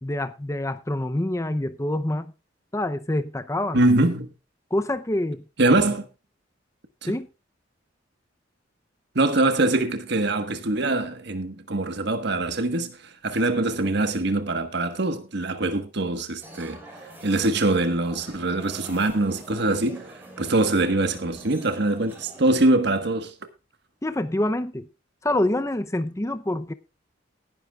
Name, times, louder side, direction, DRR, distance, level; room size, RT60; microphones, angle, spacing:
voice 1, 0.0-2.3 2.7-3.8 4.7-5.4 7.1-7.3 24.0-24.9 25.2-26.7, left 1 dB, 15° left, 0.6 m, -26 dB
voice 2, 3.7-4.3 5.6-6.1 7.0-7.2 9.1-16.8 17.2-23.3, right 2 dB, 60° right, 1.4 m, -23 dB
sound 1, 16.4-22.6, right 1 dB, 10° right, 5.0 m, -45 dB
18.5 x 11.0 x 2.4 m
head